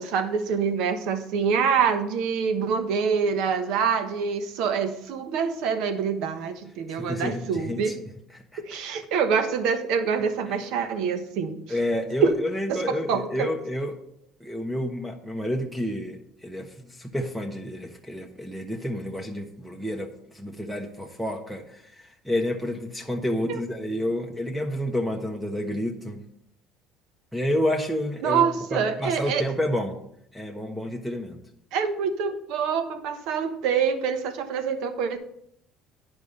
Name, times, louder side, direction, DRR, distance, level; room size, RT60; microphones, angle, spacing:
voice 1, 0.0-7.9 8.6-11.6 12.2-12.3 12.7-13.5 23.5-23.6 28.2-29.4 31.7-35.2, right 6 dB, 75° right, 8 dB, 1.1 m, -25 dB
voice 2, 6.9-7.9 8.3-8.8 11.7-14.0 14.4-26.2 27.3-28.4 28.7-30.0 30.3-31.4, left 1 dB, ahead, 3 dB, 1.0 m, -30 dB
9.4 x 5.1 x 5.4 m, 0.73 s
supercardioid pair, 90°, 0 cm